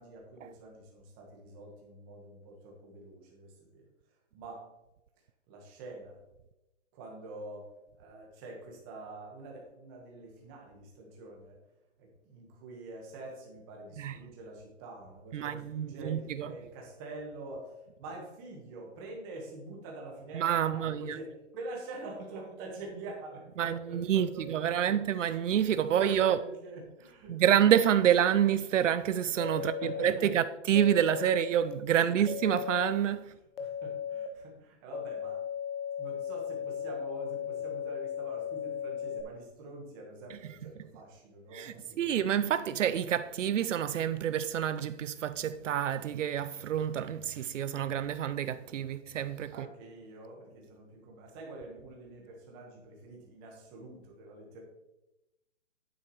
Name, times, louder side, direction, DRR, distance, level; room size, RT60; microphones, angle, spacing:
voice 1, 0.0-3.8 4.3-4.7 5.5-6.2 6.9-7.7 8.0-11.6 12.0-24.9 25.8-27.4 29.5-30.3 32.0-32.3 33.6-35.4 36.0-42.0 49.5-54.6, right 2 dB, 20° right, 1.4 m, -46 dB
voice 2, 15.3-16.5 20.3-21.2 23.6-26.4 27.3-33.2 41.5-49.7, right 10 dB, 80° right, 0.5 m, -28 dB
sound 1, 29.4-30.1 30.7-31.5 32.3-32.9 33.6-34.3 34.9-39.2, left 8 dB, 50° left, 1.0 m, -36 dB
9.3 x 7.4 x 3.1 m
hypercardioid pair, 170°, 36 cm